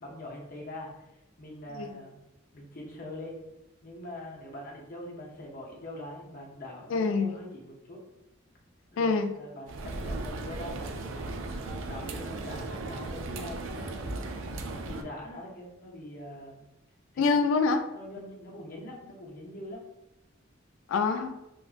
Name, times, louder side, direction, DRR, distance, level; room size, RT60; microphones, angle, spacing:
voice 1, 0.0-2.2 2.5-3.4 3.8-8.0 8.9-14.1 14.7-16.7 17.1-17.2 17.8-19.8, left 1 dB, 45° left, -2 dB, 0.7 m, -43 dB
voice 2, 6.9-7.4 9.0-9.3 17.2-17.9 20.9-21.4, left 4 dB, 80° left, 8 dB, 0.3 m, -25 dB
sound 1, 9.7-15.0, right 2 dB, 75° right, 0.4 m, -36 dB
2.9 x 2.5 x 2.4 m, 0.92 s
head